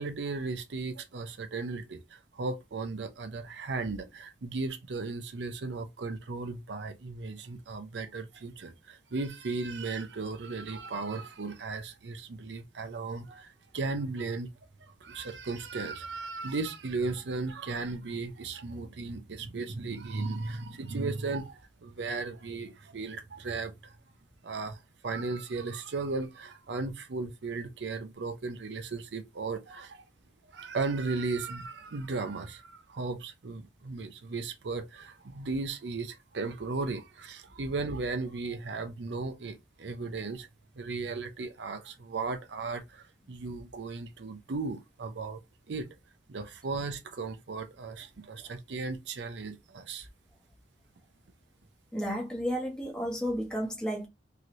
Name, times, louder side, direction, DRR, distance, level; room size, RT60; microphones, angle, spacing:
voice 1, 0.0-14.5 15.0-24.0 24.4-30.0 30.5-40.5 40.8-45.4 45.7-45.9 46.3-50.1, right 3 dB, 75° right, 0.6 m, -36 dB
voice 2, 51.9-54.1, equal, 5° left, 0.9 m, -32 dB
3.1 x 2.8 x 2.5 m
head